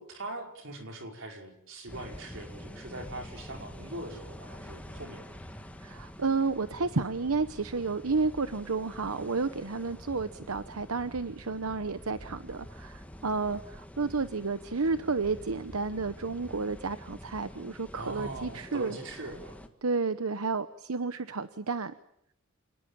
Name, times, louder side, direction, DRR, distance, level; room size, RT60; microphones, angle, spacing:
voice 1, 0.0-5.3 17.9-19.6, right 1 dB, 60° right, 3 dB, 5.3 m, -41 dB
sound 1, 1.9-19.7, equal, 5° left, 1.9 m, -47 dB
voice 2, 5.8-19.0 19.8-21.9, right 4 dB, 85° right, 12 dB, 1.0 m, -31 dB
28.5 x 19.5 x 9.0 m, 0.75 s
head